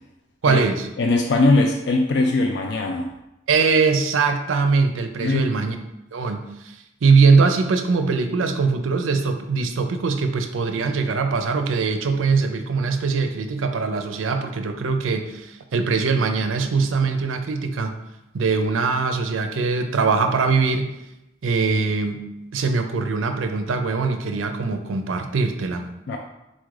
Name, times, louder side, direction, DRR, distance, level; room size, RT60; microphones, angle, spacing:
voice 1, 0.4-0.9 3.5-5.8 6.1-17.9 18.3-20.9 21.4-22.2 22.5-25.8, right 4 dB, 85° right, 7 dB, 0.5 m, -21 dB
voice 2, 1.0-3.1 5.2-5.5 26.1-26.2, left 2 dB, 60° left, 3 dB, 0.3 m, -20 dB
4.1 x 2.4 x 4.7 m, 0.92 s
head